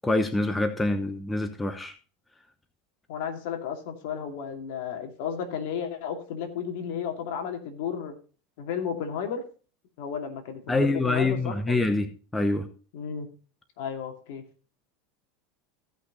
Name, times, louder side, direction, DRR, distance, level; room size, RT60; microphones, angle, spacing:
voice 1, 0.0-1.9 10.7-12.7, left 2 dB, 10° left, 1.0 m, -26 dB
voice 2, 3.1-8.1 8.6-9.4 10.0-11.9 12.9-13.3 13.8-14.4, left 7 dB, 70° left, 2.5 m, -33 dB
15.5 x 5.8 x 4.1 m
supercardioid pair, 130°, 0 cm